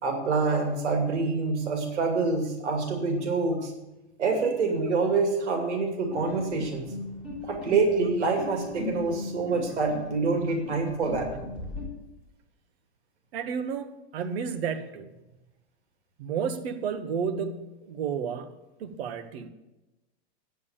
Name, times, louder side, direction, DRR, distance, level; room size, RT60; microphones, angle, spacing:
voice 1, 0.0-3.7 4.2-6.8 7.4-11.3, right 4 dB, 85° right, 2.6 m, -26 dB
sound 1, 6.1-11.8, left 3 dB, 5° right, 4.2 m, -38 dB
voice 2, 13.3-15.1 16.2-18.5 18.8-19.5, right 6 dB, 65° right, 1.3 m, -32 dB
9.4 x 8.9 x 7.1 m
hypercardioid pair, 140°, 34 cm